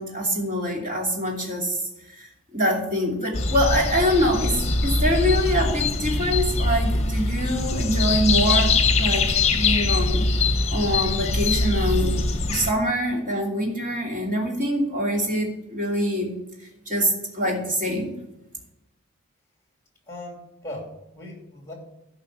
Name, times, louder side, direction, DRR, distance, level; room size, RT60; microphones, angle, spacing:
voice 1, 0.0-1.8 2.1-10.2 10.7-12.2 12.5-16.4 16.9-18.2, equal, 40° right, 0 dB, 2.8 m, -25 dB
sound 1, 3.3-12.7, left 3 dB, 30° left, 1.1 m, -23 dB
voice 2, 20.1-21.7, left 1 dB, 15° left, 2 dB, 2.7 m, -38 dB
11.0 x 5.6 x 7.4 m, 0.91 s
head